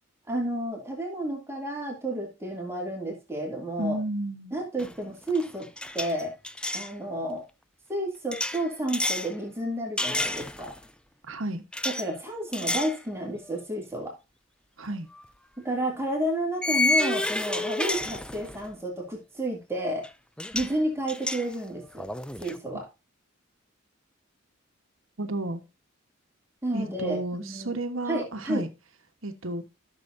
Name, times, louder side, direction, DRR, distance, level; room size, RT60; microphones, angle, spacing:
voice 1, 0.3-4.0 4.5-5.7 5.9-6.3 6.7-7.4 7.9-10.7 11.8-14.1 15.6-20.1 20.5-22.1 22.4-22.9 26.6-27.7 28.1-28.6, right 1 dB, 10° right, 2.7 m, -31 dB
voice 2, 3.8-4.6 11.3-11.6 14.8-15.1 25.2-25.6 26.7-28.7 29.2-29.6, right 2 dB, 70° right, 1.3 m, -32 dB
sound 1, 4.8-5.0 5.3-6.9 8.3-9.3 10.0-10.8 11.7-12.1 12.5-13.0 13.4-13.6 15.1-15.2 16.6-18.7 20.0-20.1 20.4-20.8 21.1-22.6, left 2 dB, 5° left, 0.4 m, -30 dB
13.5 x 6.7 x 2.7 m
head